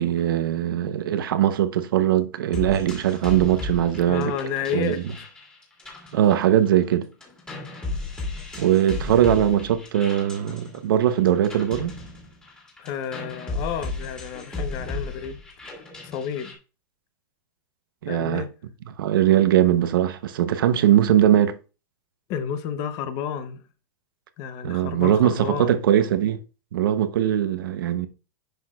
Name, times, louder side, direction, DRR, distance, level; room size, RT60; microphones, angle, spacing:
voice 1, 0.0-4.3 4.7-4.9 6.1-7.1 8.6-11.9 18.0-18.4 19.0-21.6 24.6-26.4 26.7-28.1, right 11 dB, 85° right, 0.9 m, -20 dB
sound 1, 2.5-6.9 7.2-16.5, left 3 dB, 10° left, 2.1 m, -35 dB
voice 2, 4.0-5.0 12.8-15.4 16.0-16.6 18.1-18.5 22.3-23.6 24.4-25.8, left 8 dB, 35° left, 0.8 m, -31 dB
10.0 x 6.1 x 2.4 m
supercardioid pair, 165°, 11 cm